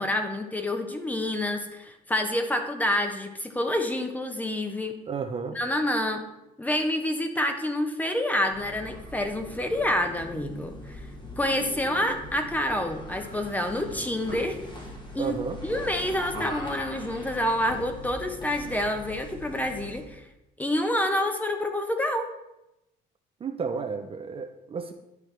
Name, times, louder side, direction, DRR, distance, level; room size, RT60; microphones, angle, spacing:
voice 1, 0.0-5.0 5.5-6.3 6.6-11.1 11.4-14.6 15.1-15.4 15.6-20.3 20.6-22.3, left 1 dB, 10° left, 6 dB, 0.8 m, -28 dB
voice 2, 5.1-5.6 15.2-15.6 23.4-24.9, right 5 dB, 35° right, 6 dB, 0.5 m, -32 dB
sound 1, 8.4-20.1, left 1 dB, 25° left, 1.4 m, -41 dB
10.5 x 4.7 x 3.3 m, 0.91 s
cardioid pair, 110°, 17 cm